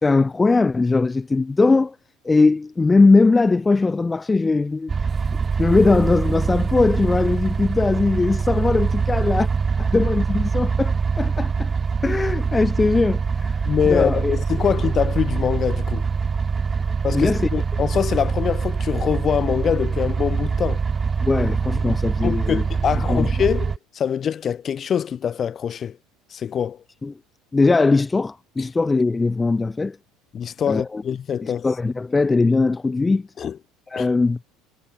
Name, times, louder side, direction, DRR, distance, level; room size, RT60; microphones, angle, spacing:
voice 1, 0.0-2.0 2.2-4.9 5.3-9.5 9.8-11.7 12.0-14.3 17.1-17.5 21.2-22.6 23.1-23.3 27.0-27.1 27.5-30.0 30.7-31.0 31.4-33.3 33.9-34.4, left 3 dB, 15° left, 0.9 m, -20 dB
sound 1, 4.9-23.8, right 5 dB, 25° right, 2.5 m, -23 dB
voice 2, 13.7-16.1 17.0-20.8 21.7-21.8 22.2-26.0 26.3-26.8 30.3-31.7 33.4-33.6 34.0-34.1, left 8 dB, 40° left, 2.3 m, -24 dB
supercardioid pair, 100°, 0 cm